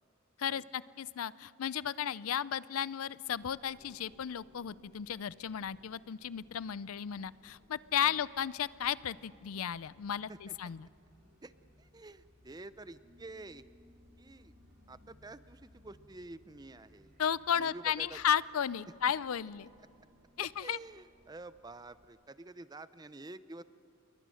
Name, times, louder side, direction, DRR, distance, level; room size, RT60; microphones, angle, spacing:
voice 1, 0.4-10.9 17.2-19.7 20.4-20.8, left 9 dB, 85° left, 19 dB, 0.5 m, -34 dB
sound 1, 3.3-22.1, left 1 dB, 45° right, 3.4 m, -64 dB
voice 2, 11.8-13.6 14.2-14.5 14.9-17.1 17.5-18.2 19.8-19.9 20.4-23.6, right 2 dB, 20° right, 14 dB, 0.5 m, -49 dB
28.5 x 22.0 x 6.4 m, 2.5 s
head